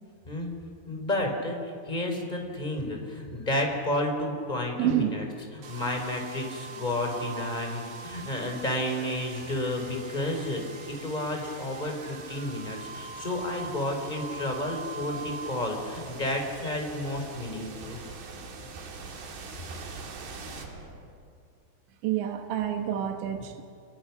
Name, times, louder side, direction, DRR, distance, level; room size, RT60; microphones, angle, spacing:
voice 1, 0.9-5.2 5.5-18.0 19.6-19.7, left 1 dB, 10° left, 2 dB, 3.6 m, -31 dB
voice 2, 4.8-5.1 22.0-23.6, right 11 dB, 80° right, 5 dB, 3.6 m, -28 dB
sound 1, 5.6-21.5, right 4 dB, 60° right, 4.3 m, -42 dB
30.0 x 24.5 x 6.1 m, 2.2 s
omnidirectional pair, 5.2 m